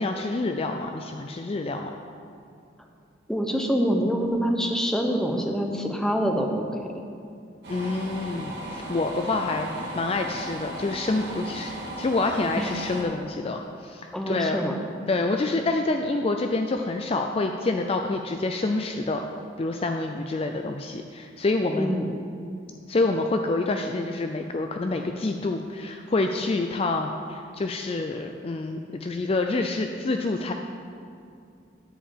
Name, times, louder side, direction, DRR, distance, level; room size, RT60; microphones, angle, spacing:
voice 1, 0.0-1.9 7.7-14.6 15.1-19.3 19.6-21.9 22.9-30.5, left 2 dB, 30° left, 4 dB, 0.4 m, -27 dB
voice 2, 3.3-7.0 12.6-12.7 14.1-14.7 21.8-22.2, equal, 5° left, 2 dB, 0.7 m, -26 dB
sound 1, 7.6-13.0, right 1 dB, 60° right, 2.2 m, -36 dB
10.0 x 4.7 x 7.2 m, 2.5 s
head